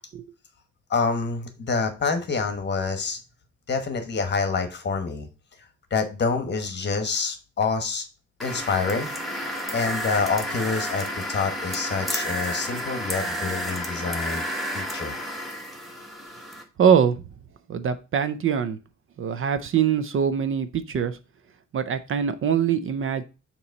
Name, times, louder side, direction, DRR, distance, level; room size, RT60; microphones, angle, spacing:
voice 1, 0.9-3.2 3.7-5.3 5.9-8.1 8.4-14.4 14.7-15.2, left 4 dB, 35° left, 7 dB, 1.1 m, -27 dB
sound 1, 8.4-16.6, equal, ahead, 1.3 m, -31 dB
voice 2, 16.8-17.2 17.7-18.8 19.2-21.2 21.7-23.2, right 7 dB, 45° right, 12 dB, 0.5 m, -23 dB
6.9 x 3.0 x 5.2 m, 0.31 s
cardioid pair, 155°, 29 cm